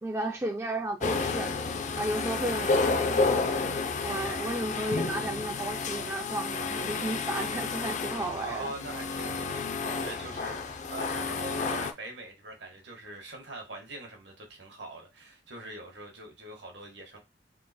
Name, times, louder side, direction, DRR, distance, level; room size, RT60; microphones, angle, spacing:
voice 1, 0.0-1.5 2.0-3.7 4.0-8.7, right 1 dB, 15° right, 0.4 m, -33 dB
sound 1, 1.0-11.9, left 4 dB, 40° left, 0.5 m, -31 dB
voice 2, 4.2-4.7 8.4-17.2, right 1 dB, 80° right, 1.5 m, -43 dB
3.7 x 2.9 x 4.2 m
head